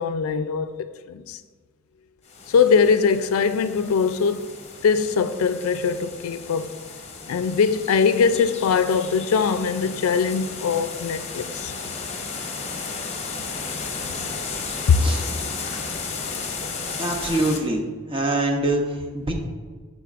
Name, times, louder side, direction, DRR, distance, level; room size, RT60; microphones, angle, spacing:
voice 1, 0.0-1.4 2.5-4.5 4.8-6.7 7.3-11.7 14.9-15.0 16.5-16.6, left 5 dB, 80° left, 0.4 m, -21 dB
sound 1, 2.3-17.6, left 4 dB, 30° left, 0.7 m, -34 dB
voice 2, 17.0-17.8 18.1-18.8 19.1-19.3, right 2 dB, 25° right, 0.8 m, -24 dB
11.5 x 4.1 x 2.4 m
head